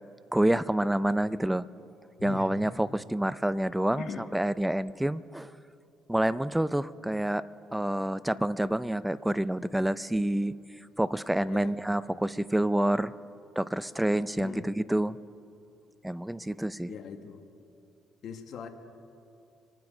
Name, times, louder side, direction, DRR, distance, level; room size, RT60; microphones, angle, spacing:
voice 1, 0.3-1.7 2.2-5.5 6.1-7.4 7.7-10.5 11.0-13.1 13.6-15.2 16.0-16.9, right 1 dB, 5° right, 17 dB, 0.5 m, -28 dB
voice 2, 2.2-2.7 4.0-4.3 11.5-11.8 14.4-14.6 16.9-17.5 18.2-18.7, left 6 dB, 65° left, 7 dB, 1.4 m, -41 dB
25.0 x 9.6 x 5.1 m, 2.6 s
supercardioid pair, 70°, 0 cm